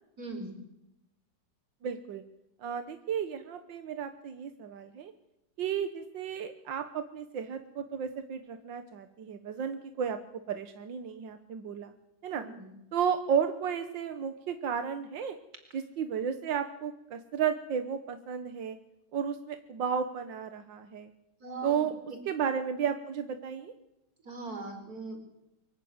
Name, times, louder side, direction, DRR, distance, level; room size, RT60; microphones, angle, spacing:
voice 1, 0.2-0.6 12.4-12.7 21.4-22.2 24.2-25.4, right 3 dB, 55° right, 5 dB, 4.9 m, -41 dB
voice 2, 1.8-2.2 2.6-5.1 5.6-10.2 10.5-11.9 12.2-12.4 12.9-15.4 15.7-18.8 19.1-21.1 21.6-21.9 22.3-23.7, right 7 dB, 90° right, 9 dB, 1.9 m, -33 dB
24.0 x 15.5 x 9.5 m, 0.87 s
omnidirectional pair, 1.9 m